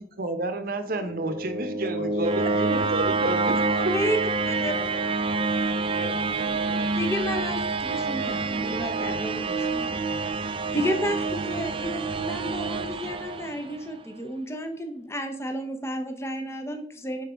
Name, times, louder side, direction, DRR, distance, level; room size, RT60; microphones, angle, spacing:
voice 1, 0.2-4.1, right 2 dB, 55° right, 9 dB, 0.8 m, -30 dB
sound 1, 0.9-13.9, right 3 dB, 30° right, 0.4 m, -27 dB
voice 2, 1.9-2.4 4.4-6.9, left 1 dB, 60° left, 3 dB, 1.4 m, -42 dB
voice 3, 7.0-9.9 10.3-10.4 10.7-17.2, equal, 15° left, 5 dB, 0.7 m, -31 dB
5.9 x 4.4 x 5.0 m, 0.70 s
head